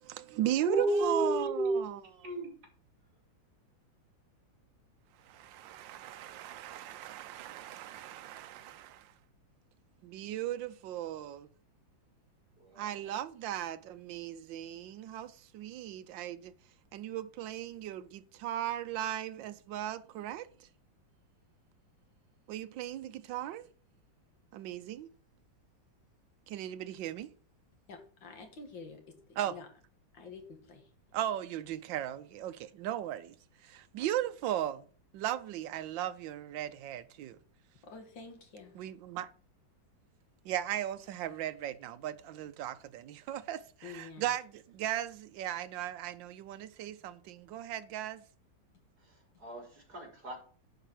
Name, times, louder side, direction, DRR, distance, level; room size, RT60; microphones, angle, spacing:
voice 1, 0.0-2.0 5.2-9.1 10.0-11.5 12.8-16.5 16.9-20.5 22.5-23.7 24.5-25.1 26.5-27.3 29.4-29.6 31.1-33.4 33.6-34.8 35.1-37.4 38.7-39.3 40.4-48.2, right 12 dB, 75° right, 1.4 m, -37 dB
voice 2, 0.6-1.8 2.1-2.5 12.6-12.9 49.0-50.4, right 1 dB, 50° right, 4.1 m, -33 dB
voice 3, 27.9-29.1 29.5-29.7 30.1-30.8 37.8-38.7 43.8-44.3, left 4 dB, 70° left, 2.5 m, -48 dB
10.0 x 4.9 x 6.3 m
omnidirectional pair, 2.1 m